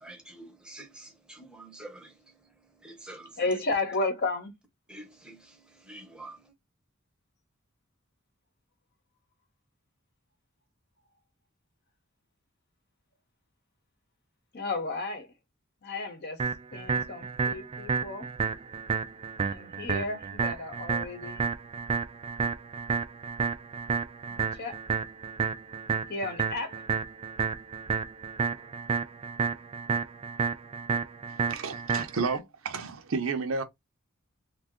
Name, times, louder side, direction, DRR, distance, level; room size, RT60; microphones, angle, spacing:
voice 1, 0.0-2.3 2.8-3.5 4.9-6.5, right 2 dB, 5° right, 0.8 m, -47 dB
voice 2, 3.4-4.5 14.5-15.3 15.8-16.5 16.7-18.3 19.4-21.5 24.3-24.8 26.1-26.8, left 3 dB, 50° left, 0.8 m, -33 dB
sound 1, 16.4-32.4, right 5 dB, 30° right, 0.3 m, -31 dB
voice 3, 31.3-33.6, right 4 dB, 75° right, 0.7 m, -32 dB
2.7 x 2.4 x 3.6 m
head